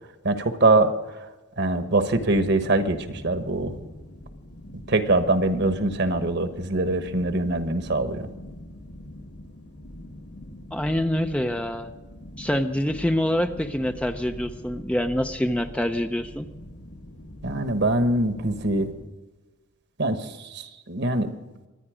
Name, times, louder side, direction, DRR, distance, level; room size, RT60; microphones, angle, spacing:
voice 1, 0.2-0.9 1.6-3.8 4.9-8.3 17.4-18.9 20.0-21.3, right 2 dB, 55° right, 9 dB, 1.2 m, -23 dB
sound 1, 2.0-19.1, left 1 dB, 80° left, 1.8 m, -43 dB
voice 2, 10.7-11.9 12.4-16.5, left 1 dB, 5° left, 7 dB, 0.5 m, -26 dB
24.5 x 9.9 x 5.0 m, 1.2 s
head